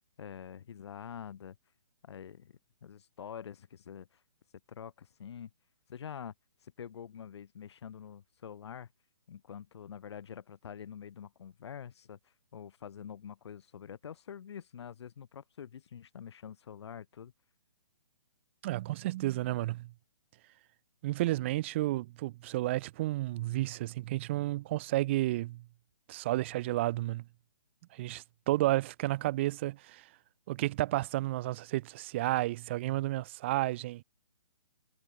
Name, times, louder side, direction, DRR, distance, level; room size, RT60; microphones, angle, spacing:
voice 1, 0.0-1.6 2.0-2.5 2.8-4.2 4.7-5.5 5.9-6.3 6.6-8.9 9.3-17.3, left 8 dB, 55° left, 7.0 m, -46 dB
voice 2, 18.6-19.9 21.0-25.6 26.1-27.2 27.9-30.0 30.5-34.0, right 17 dB, 25° right, 0.4 m, -31 dB
hypercardioid pair, 155°, 16 cm